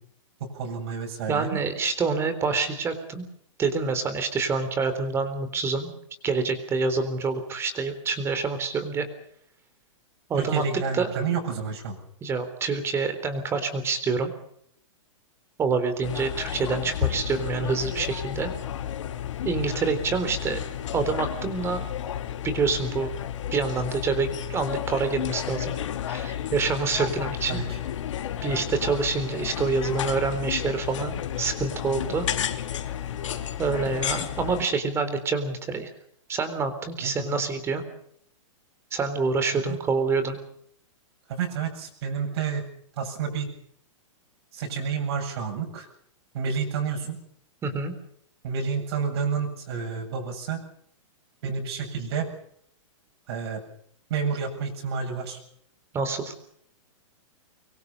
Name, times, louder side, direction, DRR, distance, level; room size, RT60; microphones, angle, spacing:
voice 1, 0.4-1.6 10.4-12.0 19.7-19.8 27.5-27.8 28.5-28.6 37.0-37.4 39.5-39.6 41.3-42.7 43.0-43.5 44.5-45.9 46.3-47.2 48.4-50.6 51.4-52.3 53.3-53.6 54.1-55.4, right 6 dB, 50° right, 1 dB, 7.9 m, -30 dB
voice 2, 1.3-3.3 3.6-5.9 6.2-9.1 10.3-10.6 10.9-11.1 12.2-14.3 15.6-18.5 19.4-20.6 20.9-21.8 22.4-23.1 23.5-25.7 26.1-27.6 28.4-32.3 33.6-35.9 36.3-37.8 38.9-40.4 47.6-47.9 55.9-56.3, right 4 dB, 15° right, 10 dB, 3.8 m, -27 dB
sound 1, 16.0-34.6, left 10 dB, 65° left, 3.3 m, -32 dB
25.0 x 24.5 x 5.5 m, 0.67 s
hypercardioid pair, 160°, 17 cm